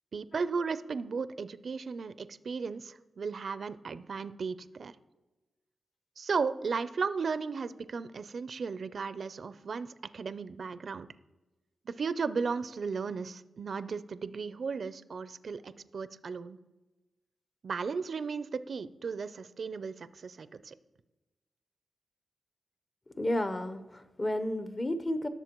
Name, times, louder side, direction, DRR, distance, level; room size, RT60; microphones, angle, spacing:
voice 1, 0.1-4.9 6.2-9.9 10.1-11.1 11.9-16.6 17.6-20.7, right 5 dB, 65° right, 14 dB, 0.4 m, -35 dB
voice 2, 23.2-25.3, left 1 dB, 35° left, 10 dB, 0.8 m, -32 dB
18.0 x 6.9 x 3.0 m, 1.1 s
cardioid pair, 80°, 0 cm